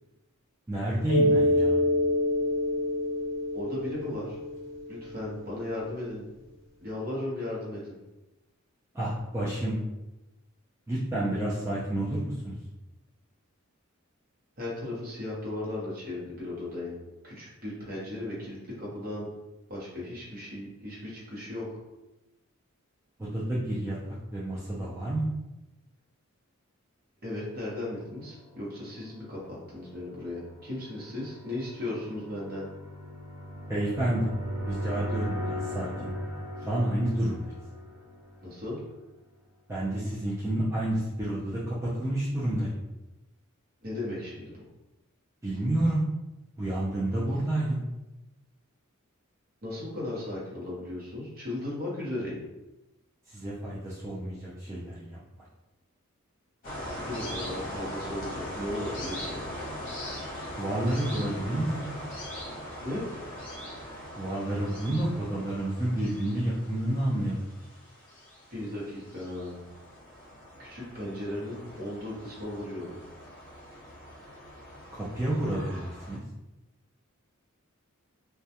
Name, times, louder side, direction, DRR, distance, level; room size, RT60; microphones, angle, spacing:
voice 1, 0.7-1.8 8.9-9.8 10.9-12.5 23.2-24.0 24.3-25.2 33.7-34.3 34.7-35.9 36.6-37.5 39.7-42.7 45.4-46.0 46.6-47.8 53.3-55.2 60.6-61.9 64.2-67.5 74.9-76.2, right 1 dB, 15° right, -8 dB, 0.4 m, -29 dB
Mallet percussion, 1.1-5.5, left 1 dB, 60° left, 0.5 m, -27 dB
voice 2, 3.5-4.4 4.9-6.2 6.8-8.0 14.6-17.0 17.2-19.3 19.7-21.7 27.2-32.7 38.4-38.8 43.8-44.6 49.6-52.4 56.8-59.4 62.8-63.1 68.5-69.6 70.6-73.0, left 1 dB, 45° right, -6 dB, 0.9 m, -36 dB
sound 1, 28.2-39.0, equal, 65° right, 1.0 m, -38 dB
sound 2, 56.6-76.2, equal, 40° left, 0.9 m, -41 dB
2.2 x 2.2 x 2.7 m, 0.99 s
head